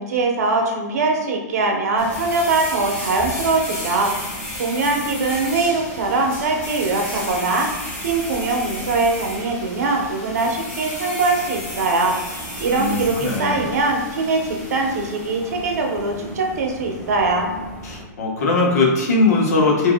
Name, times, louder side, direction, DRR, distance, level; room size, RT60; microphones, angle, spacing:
voice 1, 0.0-4.1 4.6-7.7 8.0-12.2 12.6-17.5, right 3 dB, 65° right, 1 dB, 0.8 m, -22 dB
sound 1, 2.0-18.0, left 1 dB, 15° left, 0.6 m, -33 dB
voice 2, 12.7-13.7 17.8-19.9, left 3 dB, 65° left, -1 dB, 1.0 m, -19 dB
4.7 x 2.6 x 2.2 m, 1.2 s
supercardioid pair, 175°, 9 cm